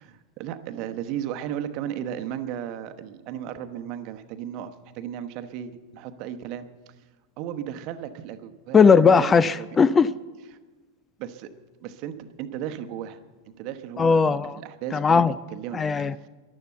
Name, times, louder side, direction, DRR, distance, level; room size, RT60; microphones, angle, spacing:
voice 1, 0.0-6.7 7.4-9.7 11.2-11.5 11.8-13.2 13.6-14.2 14.6-15.3 15.5-15.8, right 10 dB, 40° right, 9 dB, 1.0 m, -35 dB
voice 2, 8.7-10.1 14.0-14.6 14.9-15.3 15.7-16.1, left 5 dB, 20° left, 19 dB, 0.4 m, -18 dB
14.0 x 11.5 x 7.9 m, 1.3 s
figure-of-eight pair, 90°, 0 cm